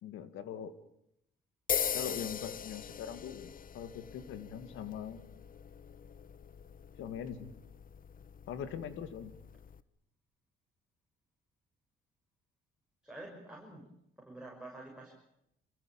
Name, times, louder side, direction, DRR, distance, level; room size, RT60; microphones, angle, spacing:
voice 1, 0.0-0.7 1.9-5.4 7.0-7.5 8.5-9.4, left 8 dB, 85° left, 11 dB, 2.2 m, -42 dB
sound 1, 1.7-9.8, left 7 dB, 45° left, 1.0 m, -41 dB
voice 2, 13.0-13.9 14.2-15.1, right 2 dB, 5° right, -2 dB, 6.2 m, -48 dB
26.5 x 16.0 x 8.9 m, 0.79 s
cardioid pair, 90°, 20 cm